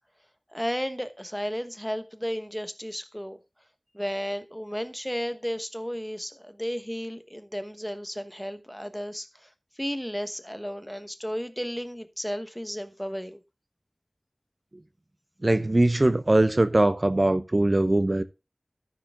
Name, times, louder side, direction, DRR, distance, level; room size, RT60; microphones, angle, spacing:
voice 1, 0.5-3.4 3.9-9.5 9.8-13.4, equal, 5° left, 1.1 m, -33 dB
voice 2, 15.4-18.2, right 1 dB, 45° right, 0.6 m, -21 dB
13.5 x 4.8 x 3.6 m
wide cardioid pair, 50°, 0 cm